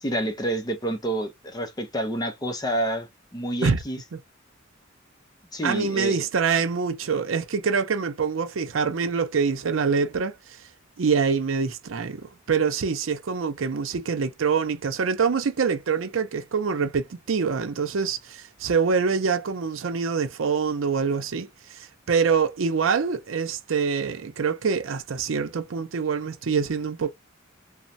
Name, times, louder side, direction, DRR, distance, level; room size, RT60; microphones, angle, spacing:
voice 1, 0.0-3.1 3.3-4.0 5.5-6.3, right 1 dB, 20° left, 0.6 m, -28 dB
voice 2, 5.6-10.6 11.0-27.1, right 5 dB, 85° right, 0.6 m, -25 dB
3.1 x 2.1 x 2.6 m
head